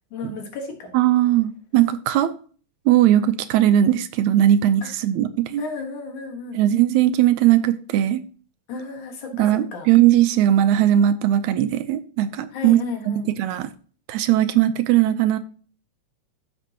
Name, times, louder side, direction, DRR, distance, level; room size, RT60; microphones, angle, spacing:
voice 1, 0.1-0.9 4.8-4.9 5.6-6.6 8.7-9.9 12.5-13.3, left 4 dB, 80° left, 3.0 m, -33 dB
voice 2, 0.9-2.3 2.9-5.6 6.5-8.2 9.4-13.7 14.1-15.4, right 12 dB, 80° right, 2.0 m, -19 dB
14.0 x 5.3 x 2.9 m
omnidirectional pair, 3.4 m